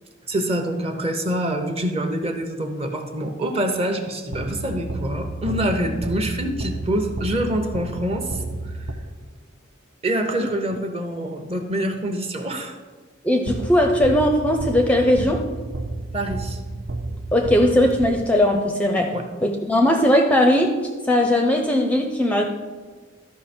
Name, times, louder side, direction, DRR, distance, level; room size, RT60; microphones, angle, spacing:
voice 1, 0.3-8.8 10.0-12.8 16.1-16.6 19.1-19.2, right 1 dB, 30° right, 5 dB, 0.8 m, -26 dB
sound 1, 4.3-9.4 13.5-18.7, right 2 dB, 55° right, 0.6 m, -31 dB
voice 2, 13.2-15.4 17.3-19.1 19.4-22.6, left 1 dB, 5° left, 3 dB, 0.5 m, -19 dB
13.0 x 5.4 x 4.3 m, 1.4 s
head